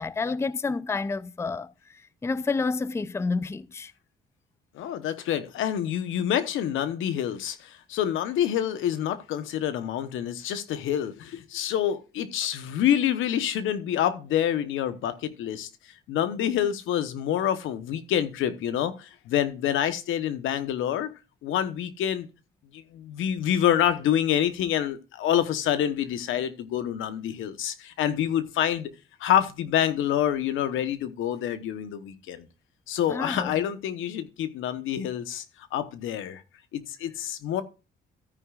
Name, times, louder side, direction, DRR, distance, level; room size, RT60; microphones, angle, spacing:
voice 1, 0.0-3.9 33.1-33.5, left 4 dB, 15° left, 0.4 m, -29 dB
voice 2, 4.7-15.7 16.1-21.1 21.4-22.3 22.7-28.9 29.2-32.5 32.9-35.4 35.7-36.4 36.7-37.6, left 10 dB, 85° left, 1.0 m, -27 dB
13.5 x 9.4 x 2.4 m
cardioid pair, 90°, 20 cm